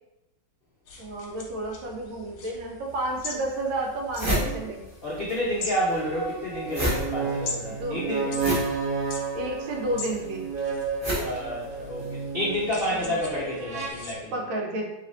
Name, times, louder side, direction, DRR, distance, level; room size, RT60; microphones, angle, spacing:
sound 1, 0.9-14.1, left 3 dB, 65° left, 1.1 m, -42 dB
voice 1, 1.0-4.8 7.7-8.0 9.3-10.5 13.0-13.2 14.3-14.8, right 1 dB, 90° right, 0 dB, 1.6 m, -31 dB
sound 2, 2.9-3.0 3.5-3.6 3.8-5.4 5.6-12.2, equal, 35° right, 0.4 m, -31 dB
sound 3, 4.4-4.6 5.7-13.9, right 5 dB, 70° right, 1.3 m, -32 dB
voice 2, 5.0-8.3 11.2-14.3, equal, 85° left, -6 dB, 0.5 m, -29 dB
3.3 x 3.3 x 3.9 m, 0.99 s
omnidirectional pair, 2.2 m